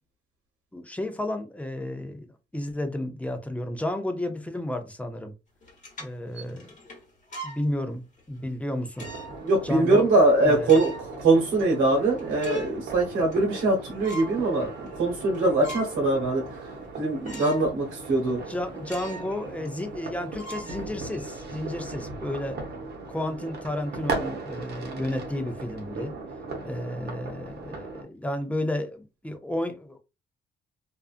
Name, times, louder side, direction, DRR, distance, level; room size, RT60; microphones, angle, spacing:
voice 1, 0.7-2.3 2.5-5.3 6.0-6.8 7.4-9.1 9.6-10.1 10.4-10.7 18.5-22.6 23.1-26.1 26.6-30.0, left 1 dB, 5° left, 0.6 m, -32 dB
sound 1, 5.6-7.6 8.2-8.3 8.9-9.5 9.9-10.0 10.5-11.2 11.6-11.7 12.0-12.8 13.2-13.7 14.0-14.4 14.9-15.0 15.3-16.1 16.5-16.6 17.2-17.7 18.0-18.1 18.8-19.3 19.6-19.7 20.4-21.3, left 1 dB, 40° left, 1.2 m, -40 dB
sound 2, 9.0-28.0, right 3 dB, 55° right, 0.9 m, -38 dB
voice 2, 9.4-18.4, right 2 dB, 80° right, 1.0 m, -23 dB
2.5 x 2.3 x 2.4 m
cardioid pair, 90°, 20 cm